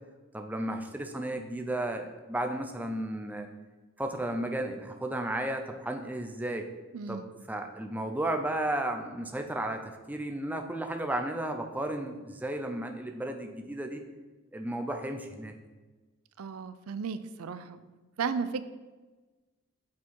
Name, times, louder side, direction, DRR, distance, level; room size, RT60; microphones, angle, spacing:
voice 1, 0.3-3.5 4.0-6.7 7.1-14.0 14.5-15.5, right 1 dB, 10° right, 4 dB, 0.5 m, -33 dB
voice 2, 6.9-7.3 16.4-17.9 18.2-18.6, right 5 dB, 80° right, 13 dB, 0.5 m, -34 dB
8.3 x 4.5 x 4.6 m, 1.3 s
head